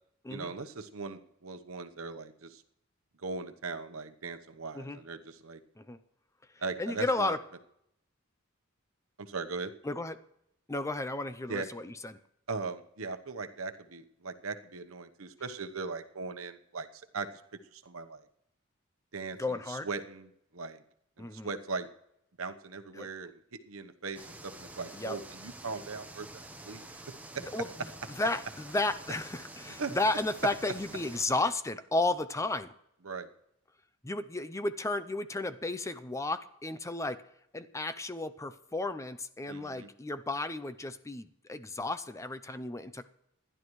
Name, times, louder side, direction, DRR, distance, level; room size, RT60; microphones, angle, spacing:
voice 1, 0.3-2.6 3.2-5.6 6.6-7.4 9.2-9.7 11.5-11.7 12.5-17.3 17.7-18.2 19.1-20.8 21.2-21.9 22.4-26.3 26.7-26.8 27.3-27.4 29.8-29.9 33.0-33.3 39.5-39.9, right 4 dB, 75° right, 8 dB, 1.0 m, -39 dB
voice 2, 6.8-7.4 9.8-10.2 10.7-12.1 19.4-19.9 21.2-21.5 22.9-23.1 24.9-25.2 27.5-27.9 28.2-32.7 34.0-37.2 37.5-43.1, left 2 dB, 15° left, 11 dB, 0.6 m, -33 dB
sound 1, 24.1-31.2, right 2 dB, 10° right, 1.1 m, -48 dB
27.0 x 11.0 x 3.2 m, 0.77 s
head